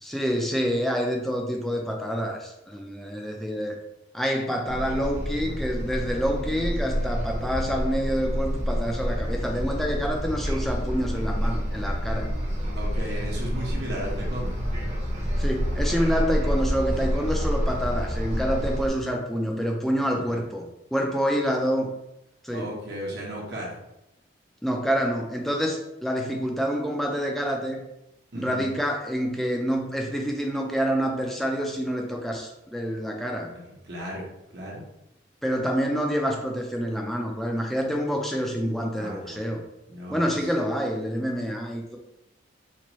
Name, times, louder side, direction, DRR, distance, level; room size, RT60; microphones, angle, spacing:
voice 1, 0.0-3.8 4.1-12.3 15.4-22.0 22.4-22.7 24.6-27.8 28.3-33.5 35.4-39.6 40.1-42.0, equal, ahead, 0 dB, 0.4 m, -27 dB
sound 1, 4.7-18.9, equal, 35° right, 0.9 m, -28 dB
voice 2, 12.7-14.6 20.3-20.4 22.5-23.8 28.3-28.6 33.5-34.2 34.5-34.8 39.0-39.4 39.9-40.5, equal, 60° right, -4 dB, 1.0 m, -35 dB
4.4 x 2.5 x 3.0 m, 0.87 s
head